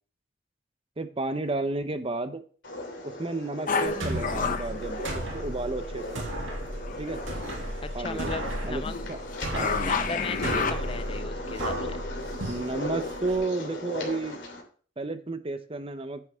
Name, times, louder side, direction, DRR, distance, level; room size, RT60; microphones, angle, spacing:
voice 1, 1.0-2.4 3.0-6.2 7.0-7.2 7.9-8.3 8.6-8.8 9.1-9.2 9.5-9.9 12.5-14.4 15.0-16.2, right 2 dB, 30° right, 10 dB, 0.8 m, -32 dB
sound 1, 2.6-14.6, left 1 dB, 65° left, 3.2 m, -38 dB
sound 2, 3.7-5.8 6.5-7.7 8.1-11.2, left 5 dB, 45° left, 0.9 m, -31 dB
sound 3, 3.9-13.4, right 1 dB, 90° right, 2.4 m, -35 dB
voice 2, 7.8-8.9 9.8-12.0, left 4 dB, 30° left, 11 dB, 0.6 m, -36 dB
9.4 x 7.9 x 3.6 m, 0.43 s
head